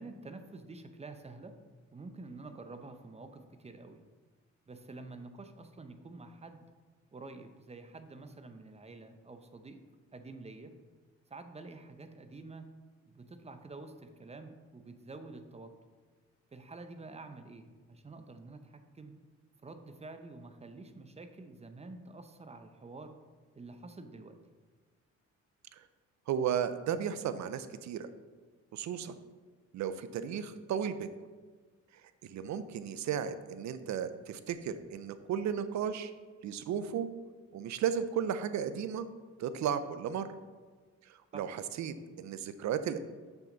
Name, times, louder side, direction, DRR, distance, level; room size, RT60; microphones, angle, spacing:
voice 1, 0.0-1.6 1.9-4.0 4.7-6.7 7.1-9.8 10.1-10.8 11.3-12.7 13.0-15.7 16.5-19.2 19.6-23.2 23.5-24.4 41.3-41.5, right 3 dB, 20° right, 8 dB, 0.7 m, -48 dB
voice 2, 26.3-28.1 28.7-29.2 29.7-31.1 32.2-36.1 36.4-37.1 37.5-39.1 39.4-40.3 41.3-43.0, right 8 dB, 65° right, 12 dB, 0.6 m, -34 dB
6.9 x 5.9 x 3.9 m, 1.4 s
cardioid pair, 90°, 30 cm